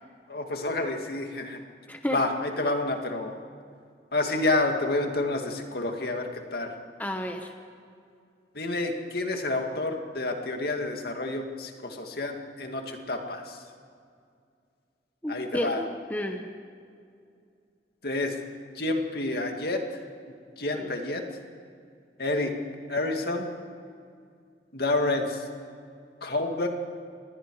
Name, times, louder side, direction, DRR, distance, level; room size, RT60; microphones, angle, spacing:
voice 1, 0.3-1.6 2.1-3.4 4.1-6.7 8.5-13.6 15.3-15.8 18.0-18.4 18.7-19.8 20.6-21.2 22.2-22.5 22.9-23.5 24.7-25.5 26.2-26.7, left 2 dB, 60° left, 3 dB, 2.3 m, -29 dB
voice 2, 1.9-2.2 7.0-7.5 15.2-16.5 20.7-20.9, left 1 dB, 10° left, 4 dB, 1.2 m, -31 dB
28.0 x 21.0 x 4.9 m, 2.3 s
head